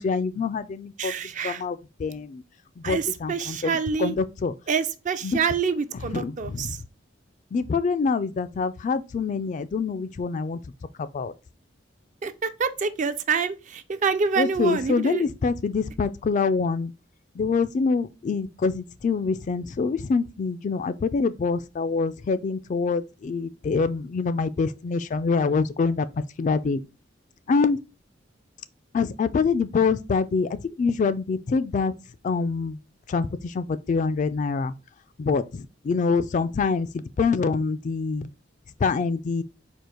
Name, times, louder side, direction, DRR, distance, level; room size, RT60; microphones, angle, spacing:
voice 1, 0.0-1.1 1.4-2.4 2.8-3.7 4.0-4.5 5.2-5.4 6.1-6.8 7.5-10.6 11.0-11.3 14.4-16.9 17.4-26.1 26.4-26.8 27.5-27.8 28.9-30.5 30.8-31.9 32.2-32.8 33.1-34.7 35.2-38.3 38.8-39.4, left 4 dB, 40° left, 0.3 m, -25 dB
voice 2, 1.0-1.6 2.8-4.1 4.7-6.8 12.2-15.3, right 6 dB, 40° right, 0.4 m, -27 dB
4.5 x 2.4 x 4.8 m
head